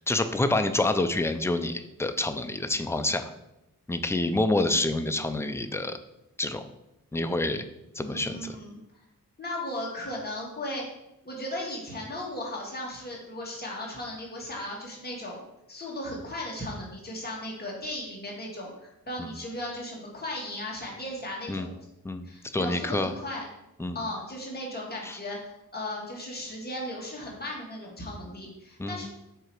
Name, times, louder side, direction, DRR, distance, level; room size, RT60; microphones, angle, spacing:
voice 1, 0.0-3.3 3.9-6.0 6.4-6.6 7.1-7.6 8.0-8.4 21.5-21.7 22.0-22.2 22.5-23.1 23.8-24.0 25.0-25.2 28.8-29.1, left 2 dB, 10° left, 8 dB, 0.3 m, -27 dB
voice 2, 8.0-8.8 9.4-10.9 11.2-15.4 15.7-21.8 22.2-23.5 23.9-29.1, left 1 dB, 25° left, -3 dB, 1.6 m, -36 dB
7.7 x 2.9 x 4.5 m, 0.88 s
wide cardioid pair, 115°, 36 cm